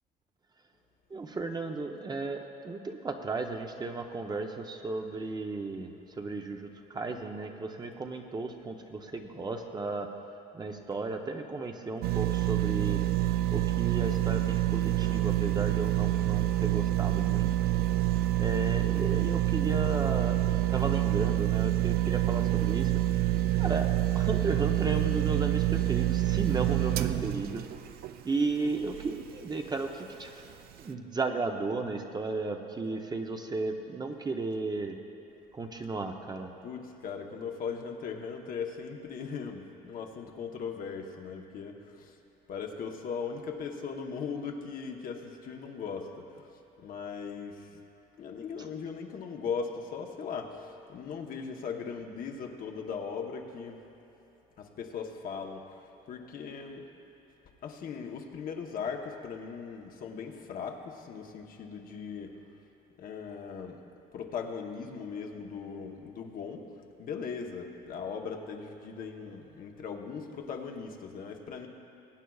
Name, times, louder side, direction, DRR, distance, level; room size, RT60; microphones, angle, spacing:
voice 1, 1.1-10.1 10.5-13.1 13.5-17.5 18.4-23.0 23.6-27.6 28.2-30.3 30.8-35.0 35.5-36.5, right 3 dB, 25° right, 4 dB, 0.7 m, -34 dB
sound 1, 12.0-29.2 29.7-29.8, right 14 dB, 65° right, 0.4 m, -27 dB
voice 2, 36.6-42.1 42.5-46.5 46.8-47.7 48.2-53.8 54.6-55.7 56.1-56.9 57.6-62.4 63.0-63.8 64.1-66.7 67.0-71.7, left 6 dB, 60° left, 2 dB, 1.0 m, -39 dB
21.5 x 9.0 x 2.4 m, 3.0 s
cardioid pair, 110°, 17 cm